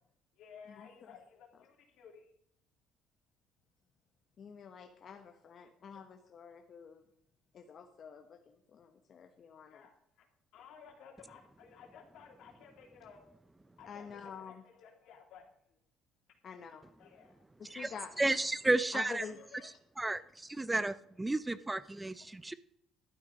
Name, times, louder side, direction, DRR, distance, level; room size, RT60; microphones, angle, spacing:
voice 1, 0.4-2.3 4.8-4.9 5.6-5.7 9.7-10.3 10.5-13.2 13.8-15.8 17.0-17.4 17.7-18.5 19.0-19.7 20.2-20.3, left 6 dB, 70° left, 2 dB, 2.9 m, -56 dB
voice 2, 4.4-7.0 7.5-9.9 13.9-14.6 16.4-16.8 17.6-18.1 18.9-19.4, left 7 dB, 50° left, 5 dB, 1.1 m, -48 dB
voice 3, 18.2-19.2 20.0-22.5, right 2 dB, 15° right, 16 dB, 0.5 m, -32 dB
12.0 x 8.5 x 5.2 m, 0.71 s
cardioid pair, 105°, 0 cm